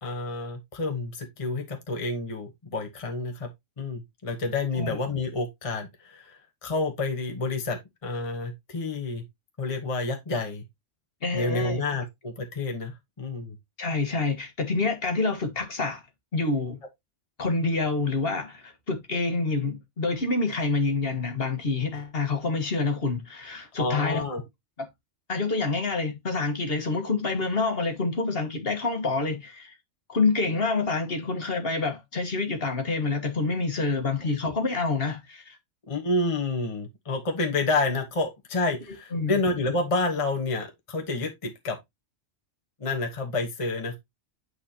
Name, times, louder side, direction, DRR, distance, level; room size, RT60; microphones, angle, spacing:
voice 1, 0.0-3.5 3.8-9.2 9.6-10.6 11.3-13.6 23.8-24.4 35.9-41.8 42.8-44.0, left 3 dB, 30° left, 1.2 m, -29 dB
voice 2, 11.2-11.8 13.8-16.0 16.3-16.8 17.4-24.2 24.8-24.9 25.3-29.7 30.1-35.6 39.1-39.3, left 3 dB, 50° left, 1.6 m, -27 dB
8.7 x 4.9 x 2.8 m
omnidirectional pair, 1.3 m